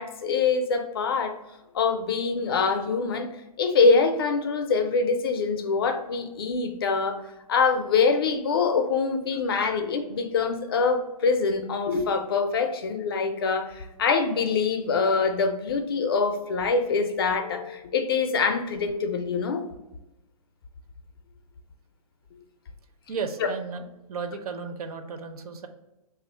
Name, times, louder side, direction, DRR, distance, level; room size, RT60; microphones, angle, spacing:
voice 1, 0.0-1.4 1.7-3.3 3.6-7.2 7.5-19.7 23.4-23.5, left 4 dB, 40° left, 6 dB, 0.4 m, -24 dB
voice 2, 23.1-25.7, right 5 dB, 70° right, 7 dB, 0.6 m, -34 dB
3.3 x 2.4 x 4.2 m, 0.97 s
hypercardioid pair, 170°, 19 cm